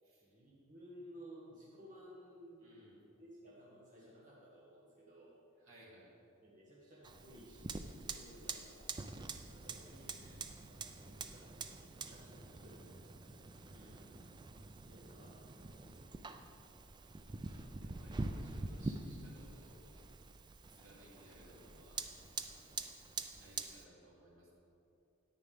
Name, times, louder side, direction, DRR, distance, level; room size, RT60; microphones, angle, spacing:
voice 1, 0.2-2.7 3.2-5.3 6.4-8.9 9.5-10.3 10.6-13.9 14.8-16.4, equal, 40° right, -7 dB, 1.5 m, -57 dB
voice 2, 2.6-3.0 5.6-6.1 8.2-8.6 9.6-10.4 13.6-14.1 17.1-20.0 20.7-22.1 22.5-22.8 23.4-24.5, right 1 dB, 70° right, -5 dB, 2.5 m, -62 dB
Fire, 7.0-23.8, right 3 dB, 20° right, 0.4 m, -46 dB
10.0 x 9.6 x 3.5 m, 2.7 s
head